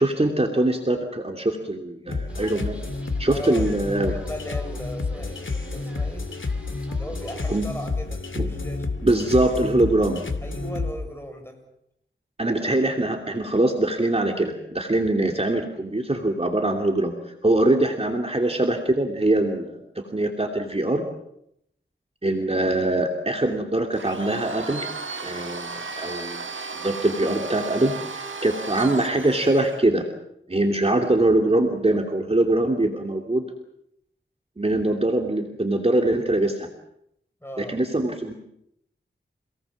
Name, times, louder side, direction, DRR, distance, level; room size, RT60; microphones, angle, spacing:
voice 1, 0.0-2.8 3.2-4.1 7.5-7.6 8.3-8.6 9.0-10.2 12.4-17.1 17.4-21.0 22.2-24.9 25.2-26.4 26.7-30.0 30.5-33.5 34.6-36.7 37.6-38.3, right 1 dB, 30° right, 3 dB, 2.8 m, -23 dB
sound 1, 2.1-10.9, left 3 dB, 85° left, 2.5 m, -30 dB
sound 2, 2.3-7.6, equal, 5° right, 6.7 m, -46 dB
voice 2, 3.3-6.3 6.9-8.9 10.4-11.6 37.4-37.8, equal, 10° left, 4 dB, 7.3 m, -37 dB
Domestic sounds home sounds, 23.9-29.8, right 4 dB, 75° right, 1.9 m, -35 dB
28.5 x 19.0 x 7.4 m, 0.77 s
wide cardioid pair, 60°, 20 cm